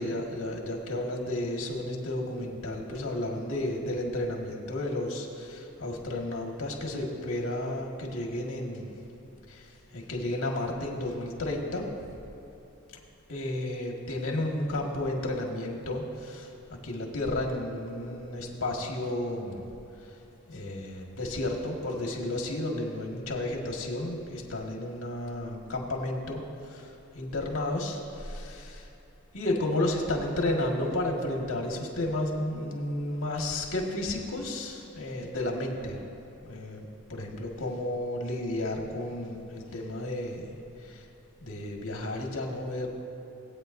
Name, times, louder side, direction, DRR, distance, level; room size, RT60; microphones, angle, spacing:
voice 1, 0.0-9.0 9.5-12.2 13.3-19.6 20.0-20.2 20.5-28.9 29.3-36.0 36.4-41.1 41.4-42.9, left 1 dB, 85° left, 0 dB, 1.7 m, -32 dB
19.0 x 8.8 x 2.6 m, 3.0 s
head